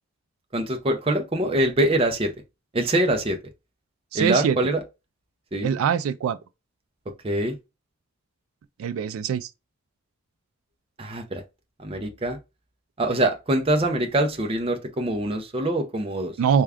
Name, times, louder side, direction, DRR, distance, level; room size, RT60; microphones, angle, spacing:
voice 1, 0.5-2.3 2.7-3.4 4.1-4.8 5.5-5.7 7.2-7.6 11.0-11.4 11.8-12.4 13.0-16.4, right 1 dB, 25° right, 0.5 m, -24 dB
voice 2, 4.1-4.6 5.6-6.4 8.8-9.5 16.4-16.6, right 7 dB, 80° right, 0.3 m, -23 dB
3.4 x 2.3 x 3.5 m
head